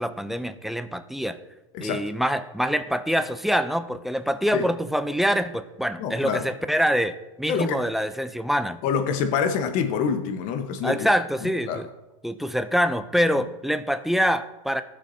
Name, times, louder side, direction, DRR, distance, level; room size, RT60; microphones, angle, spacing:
voice 1, 0.0-1.4 1.8-8.8 10.8-11.9 12.2-14.8, equal, ahead, 10 dB, 0.4 m, -25 dB
voice 2, 6.0-6.5 7.5-7.8 8.8-11.1 11.4-11.9, left 7 dB, 50° left, 8 dB, 1.1 m, -26 dB
16.0 x 6.6 x 2.7 m, 1.0 s
hypercardioid pair, 115°, 18 cm